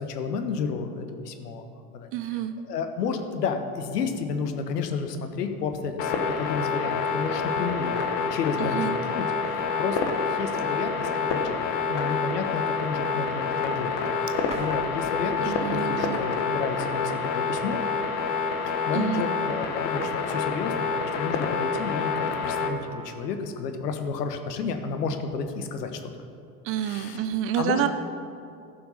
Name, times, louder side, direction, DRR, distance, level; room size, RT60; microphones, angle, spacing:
voice 1, 0.0-1.6 1.9-2.1 2.7-11.6 11.9-17.8 18.7-26.1 26.8-27.2 27.6-27.9, left 5 dB, 75° left, 6 dB, 1.2 m, -31 dB
voice 2, 2.1-2.5 8.6-9.0 15.4-16.2 18.9-19.3 26.6-27.9, right 11 dB, 30° right, 9 dB, 0.4 m, -28 dB
sound 1, 6.0-22.7, left 5 dB, 55° left, 1.4 m, -27 dB
sound 2, 14.5-17.3, right 1 dB, 10° right, 1.7 m, -47 dB
15.0 x 5.8 x 5.6 m, 2.5 s
hypercardioid pair, 85°, 49 cm